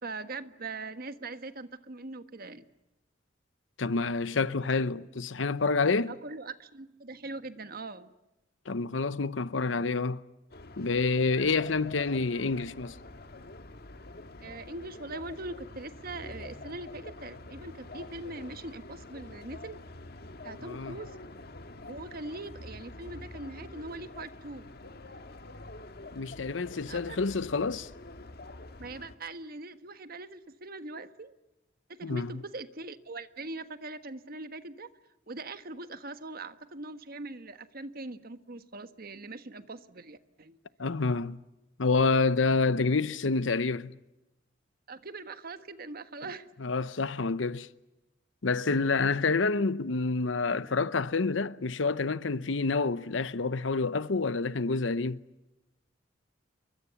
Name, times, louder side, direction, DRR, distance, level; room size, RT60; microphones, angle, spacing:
voice 1, 0.0-2.7 6.1-8.1 14.4-19.8 20.4-21.1 21.8-24.7 26.8-27.2 28.8-31.3 32.0-34.9 35.3-40.6 44.9-46.5 49.0-49.1, right 2 dB, 50° right, 1.5 m, -41 dB
voice 2, 3.8-6.1 8.7-10.2 10.8-13.0 20.6-21.0 26.1-27.9 32.0-32.3 40.8-41.4 41.8-44.0 46.6-47.7 48.4-55.2, left 4 dB, 85° left, 0.8 m, -28 dB
sound 1, 10.5-29.2, left 2 dB, 55° left, 1.8 m, -46 dB
29.0 x 24.0 x 7.1 m
head